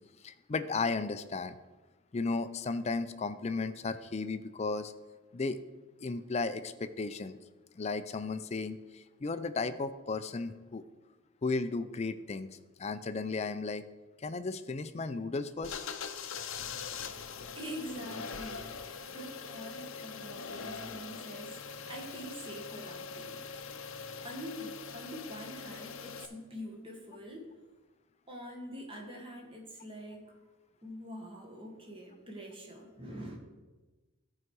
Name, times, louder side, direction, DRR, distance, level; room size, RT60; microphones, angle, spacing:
voice 1, 0.2-1.6 2.1-4.9 5.3-5.6 6.0-7.4 7.7-10.8 11.4-13.8 14.2-15.8, left 3 dB, 30° left, 11 dB, 0.4 m, -35 dB
sound 1, 15.6-26.3, left 5 dB, 70° left, 0.6 m, -42 dB
voice 2, 17.0-27.5 28.3-30.4 30.8-33.4, equal, 25° right, 1 dB, 1.6 m, -45 dB
14.0 x 4.8 x 4.7 m, 1.2 s
head